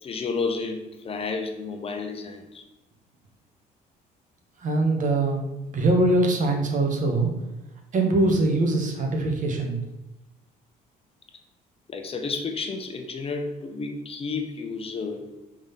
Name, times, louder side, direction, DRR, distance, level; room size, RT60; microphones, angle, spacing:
voice 1, 0.0-2.6 11.9-15.3, left 4 dB, 35° left, 5 dB, 0.8 m, -31 dB
voice 2, 4.6-5.4 5.7-7.3 7.9-9.8, right 2 dB, 50° right, 2 dB, 1.4 m, -22 dB
5.1 x 3.9 x 5.6 m, 0.97 s
cardioid pair, 110°, 17 cm